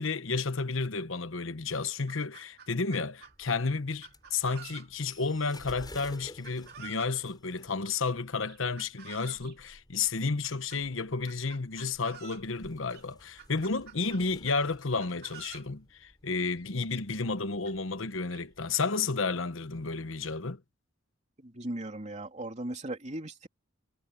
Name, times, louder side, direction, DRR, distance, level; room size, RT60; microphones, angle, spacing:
voice 1, 0.0-20.6, left 4 dB, 70° left, 1.1 m, -32 dB
Chicken rooster, 1.4-1.5 1.9-3.4 4.0-5.1 6.4-7.2 8.5-9.6 10.4-10.8 11.3-12.5 12.9-13.0 13.4-14.6 15.0-15.7 16.6-16.7 16.9-17.0 17.7-17.8 18.3-18.8, right 8 dB, 50° right, 2.6 m, -50 dB
sound 1, 3.2-18.6, left 1 dB, 20° left, 4.9 m, -55 dB
voice 2, 21.4-23.5, right 1 dB, 35° right, 3.2 m, -38 dB
head